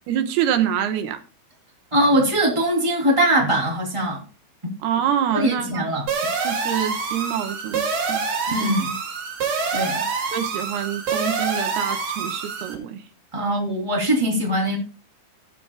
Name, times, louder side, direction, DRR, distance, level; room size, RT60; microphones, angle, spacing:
voice 1, 0.1-1.2 4.8-5.9 6.4-8.3 8.6-8.7 10.3-13.0, right 9 dB, 85° right, 3.2 m, -26 dB
voice 2, 1.9-4.2 5.3-6.1 8.5-8.9 9.7-10.0 13.3-14.8, right 1 dB, 10° right, 2.7 m, -21 dB
sound 1, 6.1-12.7, right 5 dB, 55° right, 3.7 m, -26 dB
18.0 x 8.4 x 2.3 m
omnidirectional pair, 4.5 m